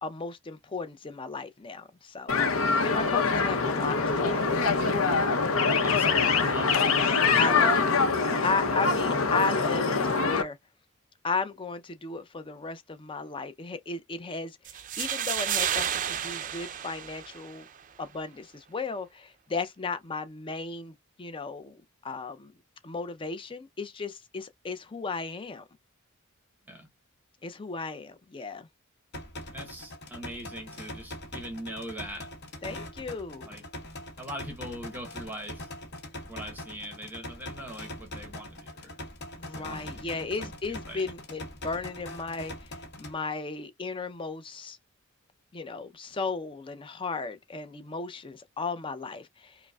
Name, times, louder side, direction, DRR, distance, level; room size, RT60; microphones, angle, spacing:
voice 1, 0.0-4.6 7.4-7.9 8.4-10.6 11.2-17.6 18.0-22.5 22.8-25.6 27.4-28.7 32.6-33.6 39.4-42.5 43.0-44.8 45.5-49.6, left 4 dB, 25° left, 0.5 m, -35 dB
sound 1, 2.3-10.4, left 4 dB, 75° left, 0.7 m, -24 dB
voice 2, 5.6-7.7 8.2-8.4 26.7-26.9 29.5-32.3 33.5-33.6 34.2-35.7 36.2-39.0 39.5-41.1, equal, 10° right, 0.8 m, -41 dB
sound 2, 14.7-17.7, right 9 dB, 40° right, 0.4 m, -31 dB
sound 3, 29.1-43.1, left 1 dB, 55° left, 1.0 m, -42 dB
5.0 x 2.0 x 2.2 m
head